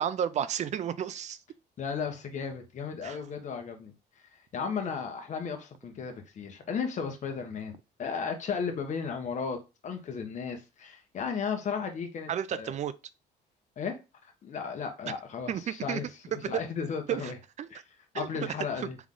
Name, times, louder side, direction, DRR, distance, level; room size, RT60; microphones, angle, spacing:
voice 1, 0.0-1.4 3.0-3.2 12.3-12.9 15.5-16.0 16.3-16.6 17.1-17.3 17.6-17.7 18.1-18.5, right 9 dB, 45° right, 0.5 m, -32 dB
voice 2, 1.8-9.6 9.8-12.7 13.8-17.4 17.7-17.8 18.1-19.0, left 6 dB, 45° left, 1.2 m, -35 dB
3.7 x 3.5 x 3.7 m
cardioid pair, 110°, 17 cm